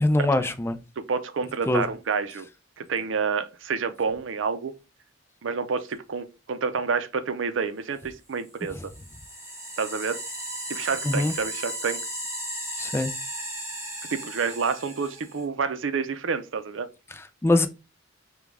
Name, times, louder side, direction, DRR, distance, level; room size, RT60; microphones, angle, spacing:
voice 1, 0.0-0.8 1.7-1.9 11.0-11.3 12.8-13.1 17.1-17.7, left 2 dB, 15° left, 0.3 m, -23 dB
voice 2, 1.0-2.5 2.8-4.7 5.4-8.9 9.8-10.2 10.7-12.0 14.1-16.9, right 5 dB, 75° right, 0.5 m, -28 dB
sound 1, 8.6-15.4, right 1 dB, 15° right, 2.0 m, -35 dB
5.0 x 2.3 x 3.4 m
head